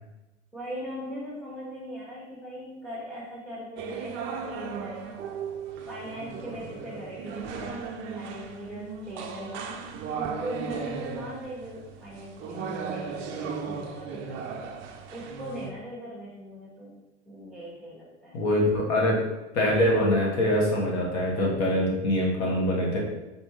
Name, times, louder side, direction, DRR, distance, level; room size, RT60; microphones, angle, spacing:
voice 1, 0.5-5.2 5.9-7.9 8.1-9.7 10.1-14.6 15.1-17.0 17.3-18.4, equal, ahead, -8 dB, 1.3 m, -40 dB
sound 1, 3.8-15.7, right 5 dB, 35° right, 0.5 m, -36 dB
voice 2, 18.3-19.2 19.5-23.0, left 1 dB, 50° left, -2 dB, 1.3 m, -24 dB
4.1 x 3.3 x 3.1 m, 1.0 s
hypercardioid pair, 100°, 36 cm